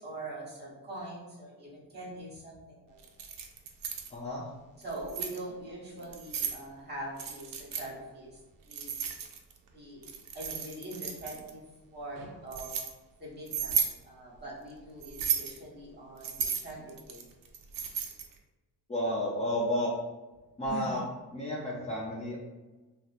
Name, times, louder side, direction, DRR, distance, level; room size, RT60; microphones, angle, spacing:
voice 1, 0.0-3.3 4.8-9.0 9.7-10.1 10.3-11.6 11.9-12.7 13.2-17.2 20.6-21.0, right 2 dB, 25° right, -5 dB, 1.1 m, -43 dB
Keys jangling, 3.0-4.1 4.8-5.4 6.0-6.6 7.2-7.9 8.7-9.6 10.0-11.5 12.1-12.9 13.5-14.0 15.0-15.6 16.2-18.3, right 7 dB, 55° right, 0.5 m, -34 dB
voice 2, 4.1-4.4 18.9-19.9 20.6-21.0 21.3-22.4, left 1 dB, 15° left, -6 dB, 0.4 m, -31 dB
2.8 x 2.1 x 2.4 m, 1.1 s
cardioid pair, 95°, 40 cm